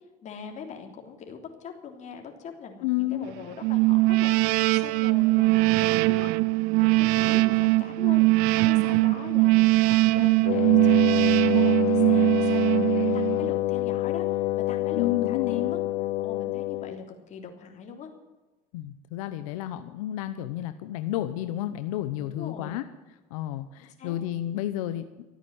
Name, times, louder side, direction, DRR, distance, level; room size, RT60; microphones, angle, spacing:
voice 1, 0.2-11.3 11.5-15.8 16.2-18.1 22.2-22.8 24.0-24.2, left 6 dB, 45° left, 2 dB, 3.3 m, -41 dB
voice 2, 2.8-3.3 14.9-15.8 18.7-22.8 23.3-25.1, left 13 dB, 90° left, 9 dB, 0.9 m, -31 dB
sound 1, 3.6-13.5, right 22 dB, 70° right, 0.4 m, -21 dB
Wind instrument woodwind instrument, 10.4-17.0, left 16 dB, 60° left, 0.7 m, -27 dB
14.0 x 9.3 x 9.0 m, 1.2 s
supercardioid pair, 110°, 17 cm